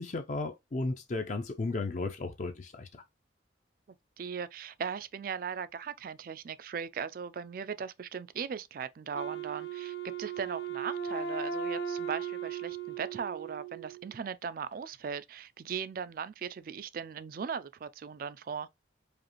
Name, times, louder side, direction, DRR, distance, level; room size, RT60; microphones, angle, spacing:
voice 1, 0.0-3.0, left 3 dB, 40° left, 0.5 m, -34 dB
voice 2, 4.2-18.7, right 6 dB, 50° right, 0.3 m, -38 dB
Wind instrument woodwind instrument, 9.1-14.1, right 6 dB, 75° left, 0.7 m, -37 dB
5.0 x 2.4 x 2.9 m
head